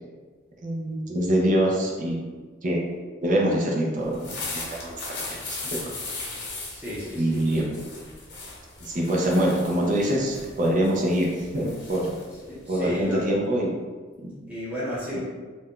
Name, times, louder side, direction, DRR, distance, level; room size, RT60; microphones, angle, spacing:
voice 1, 0.6-2.2 2.6-2.9 3.2-4.9 5.3-5.8 7.1-7.6 8.8-12.1 12.7-13.7 14.2-14.3, right 1 dB, 45° right, -2 dB, 0.6 m, -24 dB
sound 1, 4.0-13.3, left 3 dB, 65° left, 0.7 m, -38 dB
voice 2, 6.7-7.4 9.3-9.4 12.4-13.3 14.5-15.2, equal, 10° right, -10 dB, 0.7 m, -33 dB
2.6 x 2.2 x 3.6 m, 1.5 s
head